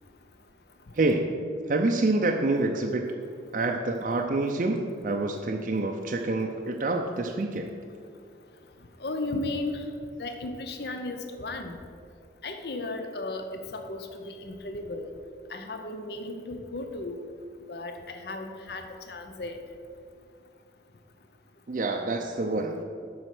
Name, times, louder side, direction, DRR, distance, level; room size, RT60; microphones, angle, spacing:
voice 1, 0.9-1.3 1.7-3.0 3.5-7.7 21.7-22.8, right 2 dB, 45° right, 2 dB, 0.5 m, -27 dB
voice 2, 9.0-9.8 10.2-11.8 12.4-15.1 15.5-17.2 17.7-19.6, left 2 dB, 60° left, 6 dB, 0.7 m, -35 dB
7.7 x 5.5 x 6.0 m, 2.3 s
head